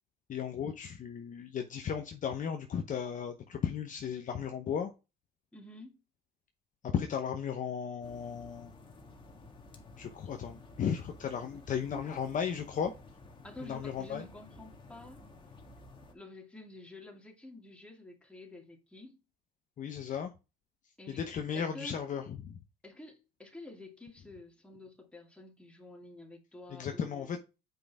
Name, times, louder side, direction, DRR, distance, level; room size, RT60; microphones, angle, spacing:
voice 1, 0.3-4.9 6.8-8.7 10.0-12.9 13.6-14.2 19.8-20.3 21.1-22.6 26.7-27.4, left 7 dB, 40° left, 0.9 m, -35 dB
voice 2, 5.5-5.9 11.5-11.6 11.9-12.2 13.4-15.2 16.1-19.2 21.0-21.2 21.5-22.0 22.8-27.3, left 2 dB, 5° left, 2.3 m, -49 dB
sound 1, 8.0-16.1, left 2 dB, 25° left, 1.7 m, -53 dB
7.8 x 5.2 x 3.5 m
supercardioid pair, 95°, 21 cm